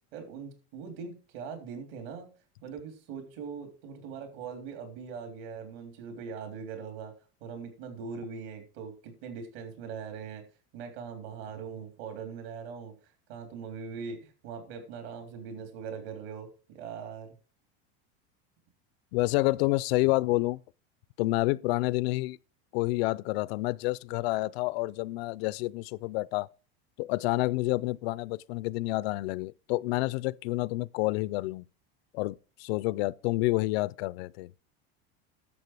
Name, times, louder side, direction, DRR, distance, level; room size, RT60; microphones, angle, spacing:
voice 1, 0.1-2.3 2.6-7.1 7.4-10.4 10.7-12.9 13.3-17.3, right 6 dB, 70° right, 3.6 m, -41 dB
voice 2, 19.1-20.6 21.2-22.4 22.7-26.5 27.0-31.6 32.1-32.3 32.6-34.5, left 20 dB, 75° left, 0.5 m, -28 dB
11.0 x 7.4 x 4.8 m
cardioid pair, 160°, 31 cm